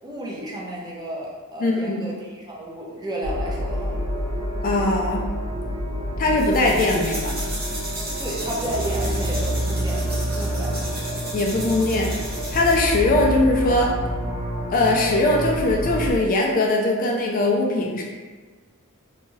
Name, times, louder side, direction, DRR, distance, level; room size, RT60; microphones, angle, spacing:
voice 1, 0.0-4.0 8.2-10.0 10.3-10.7, right 1 dB, 20° right, -4 dB, 0.5 m, -32 dB
voice 2, 1.6-2.0 4.6-5.3 6.2-7.4 11.3-12.2 12.5-13.9 14.7-18.0, left 2 dB, 40° left, -1 dB, 0.3 m, -20 dB
sound 1, 3.2-16.1, equal, 70° right, 0.5 m, -28 dB
sound 2, 6.4-12.8, right 1 dB, 45° right, 0.9 m, -35 dB
2.6 x 2.2 x 3.0 m, 1.4 s
head